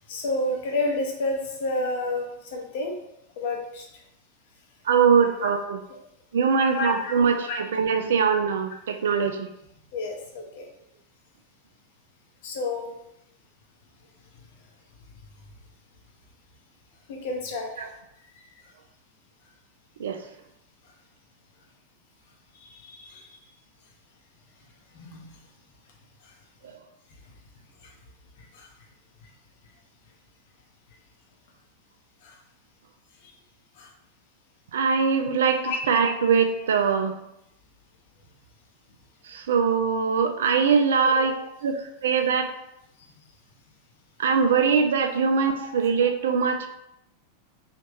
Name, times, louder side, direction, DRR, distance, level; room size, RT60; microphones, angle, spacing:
voice 1, 0.1-2.9 3.4-3.8 5.4-5.5 5.9-6.0 6.6-7.6 9.9-10.6 12.4-12.9 17.1-17.7 22.6-23.3 25.0-25.2 28.6-28.7 35.6-35.8 41.2-41.3 45.2-45.3, left 2 dB, 50° left, 0 dB, 0.7 m, -30 dB
voice 2, 4.9-5.8 6.3-9.5 17.8-17.9 20.0-20.2 34.7-37.1 39.3-41.4 41.6-42.5 44.2-46.7, right 6 dB, 60° right, 6 dB, 0.3 m, -22 dB
3.0 x 2.4 x 3.3 m, 0.81 s
figure-of-eight pair, 90°, 0 cm